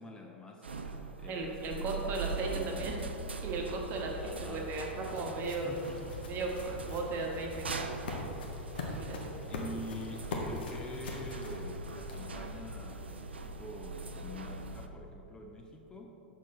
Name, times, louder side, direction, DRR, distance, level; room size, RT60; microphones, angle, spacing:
voice 1, 0.0-3.0 4.2-4.7 5.4-6.3 7.2-7.3 9.5-16.4, left 1 dB, 15° left, 1 dB, 0.6 m, -46 dB
sound 1, 0.6-14.9, right 3 dB, 75° right, 0.5 m, -41 dB
voice 2, 1.3-3.0 3.4-5.8 6.3-8.0 8.8-9.3, right 3 dB, 35° right, 0 dB, 1.1 m, -36 dB
sound 2, 4.2-12.5, left 2 dB, 60° left, 1.0 m, -43 dB
6.4 x 6.4 x 4.1 m, 3.0 s
figure-of-eight pair, 90°, 6 cm